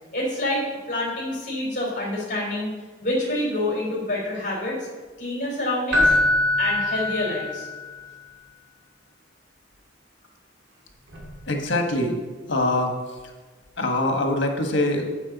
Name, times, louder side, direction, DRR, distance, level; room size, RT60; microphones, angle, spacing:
voice 1, 0.1-0.6 0.9-2.7 3.0-4.8 5.2-6.2 6.6-7.7, left 1 dB, 45° left, -4 dB, 3.3 m, -27 dB
Keyboard (musical), 5.9-7.9 11.1-11.3, left 1 dB, 70° right, 2.2 m, -22 dB
voice 2, 11.5-12.1 12.5-12.9 13.8-15.1, left 1 dB, 75° left, 4 dB, 1.4 m, -23 dB
9.8 x 7.9 x 4.1 m, 1.3 s
head